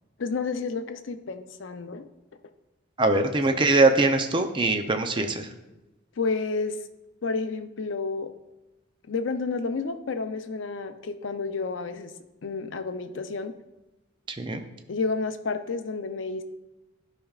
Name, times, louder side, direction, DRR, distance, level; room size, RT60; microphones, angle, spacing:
voice 1, 0.2-2.1 3.1-3.3 6.2-6.8 7.2-8.3 9.1-12.1 12.4-13.5 14.9-16.4, left 4 dB, 70° left, 8 dB, 0.5 m, -30 dB
voice 2, 3.0-5.5 14.3-14.6, right 2 dB, 25° right, 6 dB, 0.5 m, -22 dB
12.0 x 5.0 x 2.4 m, 1.0 s
head